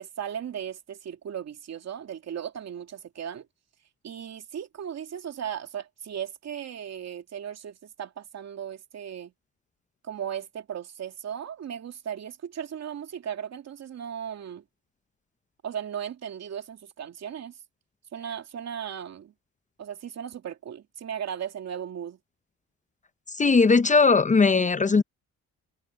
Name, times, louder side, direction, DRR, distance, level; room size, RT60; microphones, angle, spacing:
voice 1, 0.0-3.5 4.0-9.3 10.0-14.6 15.6-17.6 18.1-19.3 19.8-22.2 24.4-24.7, right 9 dB, 60° right, 2.7 m, -36 dB
voice 2, 23.3-25.0, left 4 dB, 25° left, 0.8 m, -19 dB
cardioid pair, 90°, 30 cm